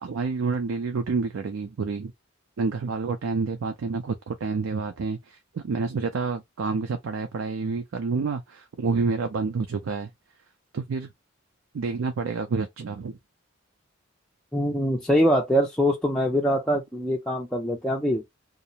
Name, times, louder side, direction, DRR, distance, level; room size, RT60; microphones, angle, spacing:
voice 1, 0.0-2.1 2.6-10.1 10.7-11.1 11.7-13.2, right 4 dB, 80° right, 0.4 m, -28 dB
voice 2, 14.5-18.2, equal, 5° left, 0.3 m, -23 dB
2.4 x 2.0 x 2.7 m
head